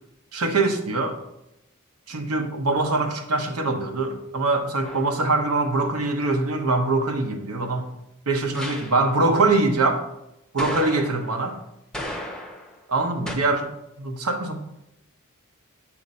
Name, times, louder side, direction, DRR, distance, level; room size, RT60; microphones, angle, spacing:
voice 1, 0.3-1.2 2.1-7.9 8.3-10.0 10.5-11.6 12.9-13.7 14.0-14.6, right 3 dB, 85° right, 5 dB, 0.8 m, -23 dB
sound 1, 4.8-5.3 8.5-9.1 10.6-11.4 11.9-12.8 13.3-13.4, left 1 dB, 5° left, 0.6 m, -34 dB
7.1 x 2.6 x 5.3 m, 0.86 s
head